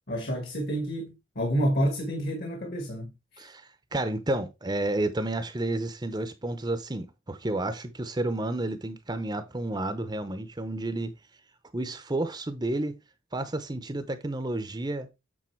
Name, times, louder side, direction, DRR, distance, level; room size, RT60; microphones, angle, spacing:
voice 1, 0.1-3.1, equal, 50° left, 1.5 m, -29 dB
voice 2, 3.4-11.1 11.7-13.0 13.3-15.1, right 2 dB, 20° right, 0.7 m, -31 dB
8.6 x 4.0 x 4.5 m
head